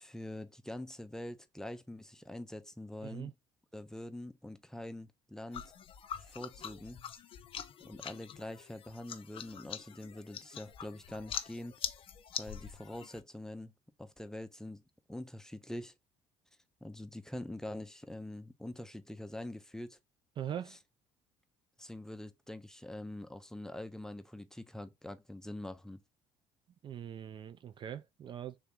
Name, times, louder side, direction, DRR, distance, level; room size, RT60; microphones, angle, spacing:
voice 1, 0.0-3.3 3.7-5.6 6.2-7.0 7.8-11.7 12.4-13.7 14.0-14.8 15.1-15.9 16.8-20.0 21.8-26.0, left 1 dB, 5° left, 0.6 m, -44 dB
sound 1, 5.5-13.2, left 9 dB, 45° left, 0.5 m, -44 dB
voice 2, 20.4-20.8 26.8-28.6, right 10 dB, 40° right, 0.3 m, -42 dB
3.5 x 2.9 x 3.6 m
supercardioid pair, 85°, 12 cm